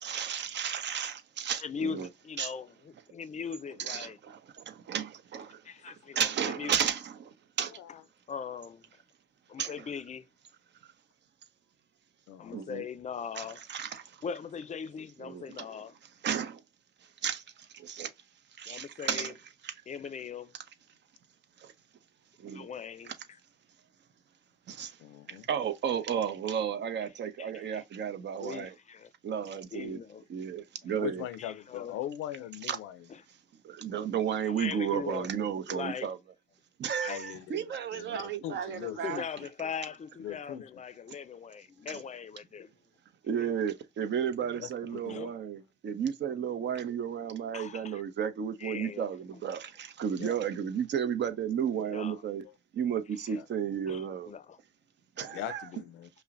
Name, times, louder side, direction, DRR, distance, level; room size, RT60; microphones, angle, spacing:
voice 1, 0.0-2.1 2.4-2.5 3.8-4.4 4.7-5.6 6.1-7.3 7.6-7.7 9.6-9.9 12.5-12.8 13.3-14.0 15.2-15.7 16.2-16.6 17.2-17.4 17.7-18.1 18.6-19.3 19.6-19.7 22.4-22.7 23.0-23.1 24.7-24.9 25.3-28.7 29.2-30.0 30.3-31.2 32.6-32.8 33.6-36.2 36.8-39.2 41.9-42.0 43.2-52.4 52.7-54.3 55.2-55.7, right 8 dB, 65° right, 0.8 m, -33 dB
voice 2, 1.6-4.2 5.6-6.8 8.3-8.8 9.5-10.3 12.4-13.6 14.2-15.9 18.7-19.3 19.9-20.5 22.5-23.1 27.4-27.6 28.4-29.1 29.7-30.2 31.4-32.0 33.1-33.2 34.5-35.3 35.7-36.1 37.0-37.3 39.0-42.7 45.1-45.3 47.5-48.0 48.6-49.1 51.9-52.2 53.9-54.6 55.3-55.4, left 6 dB, 35° left, 0.5 m, -40 dB
voice 3, 12.3-12.6 25.0-25.5 31.0-33.0 37.1-39.2 40.2-40.6 44.4-45.3 50.2-50.4 52.4-52.5 53.3-53.4 55.2-56.1, left 12 dB, 90° left, 0.5 m, -41 dB
5.4 x 2.1 x 2.5 m
cardioid pair, 90°, 20 cm